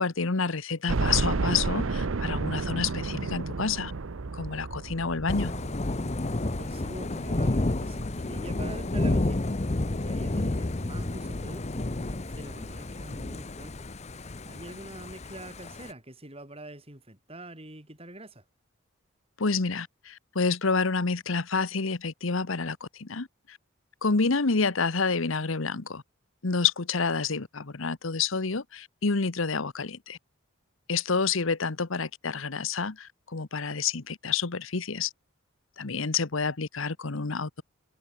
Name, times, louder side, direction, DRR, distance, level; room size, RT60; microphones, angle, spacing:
voice 1, 0.0-3.9 4.3-5.5 19.4-23.6 24.0-26.0 26.4-30.2 30.9-35.1 35.8-37.6, left 4 dB, 70° left, 1.1 m, -28 dB
sound 1, 0.9-9.8 10.3-10.4 10.7-10.8 12.0-12.1 12.4-12.5, right 3 dB, 75° right, 0.8 m, -32 dB
Thunder / Rain, 5.3-15.9, left 2 dB, 30° left, 0.8 m, -31 dB
voice 2, 6.2-9.5 9.9-13.8 14.1-18.4, right 1 dB, 30° right, 6.6 m, -44 dB
head